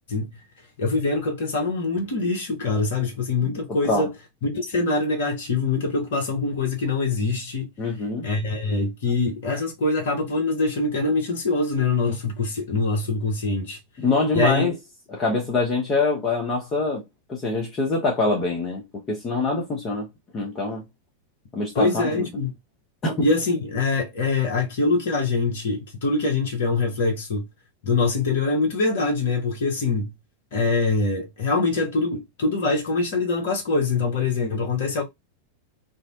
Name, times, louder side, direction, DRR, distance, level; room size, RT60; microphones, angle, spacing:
voice 1, 0.8-4.1 4.4-7.7 8.2-13.8 14.3-14.6 21.7-22.5 23.2-27.5 27.8-30.1 30.5-35.0, left 3 dB, 55° left, 0.8 m, -24 dB
voice 2, 7.8-8.3 14.0-14.7 15.1-17.0 17.3-20.1 20.3-20.8 21.5-22.3 23.0-23.3, left 3 dB, 25° left, 0.7 m, -24 dB
2.6 x 2.1 x 2.4 m
figure-of-eight pair, 90°, 0 cm